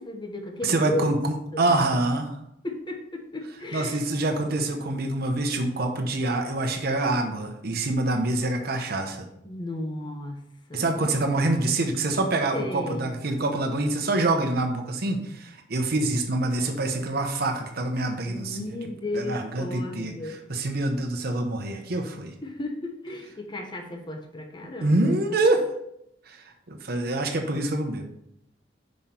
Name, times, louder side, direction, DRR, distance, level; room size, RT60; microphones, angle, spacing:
voice 1, 0.0-1.1 1.5-1.6 2.6-4.0 9.4-10.4 10.7-10.9 12.5-13.1 18.3-20.4 22.4-25.1, left 1 dB, 25° left, 3 dB, 0.9 m, -34 dB
voice 2, 0.6-2.3 3.7-9.3 10.7-18.8 19.1-22.3 24.8-25.7 26.3-28.0, right 2 dB, 55° right, 4 dB, 0.9 m, -26 dB
5.8 x 5.3 x 4.3 m, 0.77 s
head